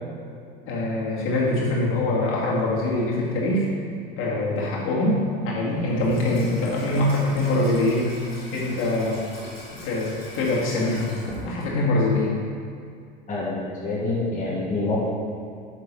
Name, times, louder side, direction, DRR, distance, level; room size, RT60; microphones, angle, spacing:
voice 1, 0.7-3.7 4.2-8.2 8.5-9.3 9.8-11.1 11.4-12.4, left 2 dB, 45° left, -4 dB, 2.3 m, -23 dB
Water tap faucet / Sink (filling or washing), 5.8-12.0, equal, 85° left, 1.7 m, -40 dB
voice 2, 13.3-15.0, left 2 dB, 25° left, -6 dB, 1.8 m, -27 dB
8.8 x 6.8 x 4.2 m, 2.4 s
figure-of-eight pair, 70°, 29 cm